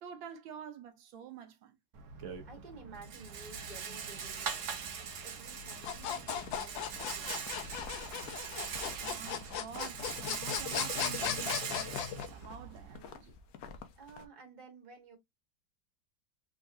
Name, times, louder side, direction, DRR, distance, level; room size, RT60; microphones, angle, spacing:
voice 1, 0.0-1.7 9.0-13.4, right 8 dB, 85° right, 1.5 m, -48 dB
Rattle, 1.9-13.0, right 6 dB, 55° right, 0.9 m, -41 dB
voice 2, 2.4-4.7 5.0-7.7 13.9-15.2, right 3 dB, 25° right, 1.4 m, -53 dB
sound 1, 5.6-14.3, left 5 dB, 65° left, 0.9 m, -51 dB
sound 2, 5.9-12.3, left 9 dB, 80° left, 1.4 m, -37 dB
3.8 x 3.7 x 2.6 m
omnidirectional pair, 2.1 m